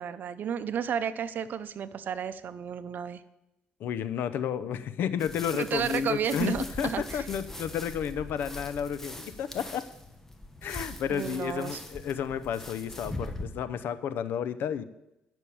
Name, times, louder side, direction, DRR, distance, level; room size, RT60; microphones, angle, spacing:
voice 1, 0.0-3.2 5.5-7.2 11.1-11.8, right 8 dB, 60° right, 14 dB, 0.7 m, -32 dB
voice 2, 3.8-9.8 10.6-14.8, left 8 dB, 80° left, 14 dB, 0.6 m, -32 dB
sound 1, 5.2-13.5, left 1 dB, 10° left, 1.2 m, -42 dB
10.0 x 6.3 x 7.0 m, 0.88 s
cardioid pair, 100°, 4 cm